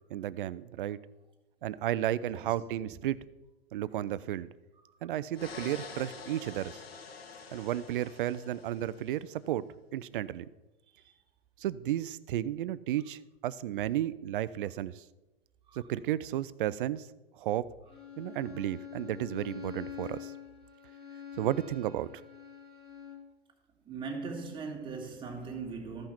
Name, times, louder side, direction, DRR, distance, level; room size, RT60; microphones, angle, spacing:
voice 1, 0.1-1.0 1.6-3.2 3.7-4.5 5.0-6.8 7.5-9.7 9.9-10.5 11.6-15.0 15.7-17.1 17.3-17.7 18.2-20.3 21.4-22.1, right 12 dB, 60° right, 0.5 m, -33 dB
sound 1, 5.3-9.2, left 5 dB, 75° left, 1.2 m, -47 dB
Bowed string instrument, 17.9-23.3, left 8 dB, 20° left, 1.8 m, -46 dB
voice 2, 23.9-26.1, right 4 dB, 15° right, 1.9 m, -39 dB
14.0 x 5.5 x 4.4 m
figure-of-eight pair, 105°, 30 cm